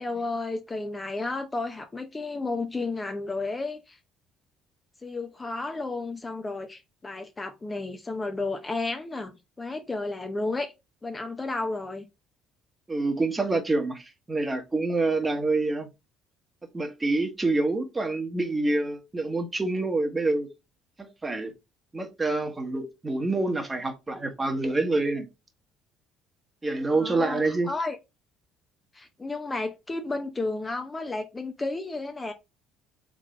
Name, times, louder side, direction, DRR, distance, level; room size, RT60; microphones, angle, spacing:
voice 1, 0.0-4.0 5.0-10.7 11.0-12.0 26.9-28.0 28.9-32.3, left 3 dB, 25° left, 0.7 m, -32 dB
voice 2, 12.9-15.9 16.7-20.5 21.0-21.5 21.9-25.3 26.6-27.7, right 2 dB, 20° right, 1.3 m, -27 dB
3.7 x 3.5 x 3.8 m
hypercardioid pair, 65°, 0 cm